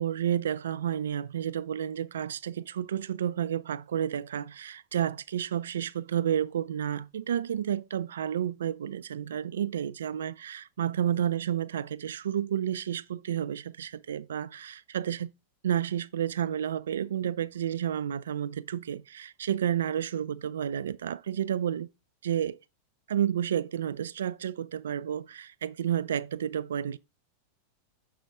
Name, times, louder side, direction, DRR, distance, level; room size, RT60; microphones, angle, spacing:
voice 1, 0.0-15.3 15.6-21.9 22.2-22.6 23.1-27.0, right 9 dB, 65° right, 0.3 m, -31 dB
6.6 x 4.8 x 3.7 m
figure-of-eight pair, 90°, 0 cm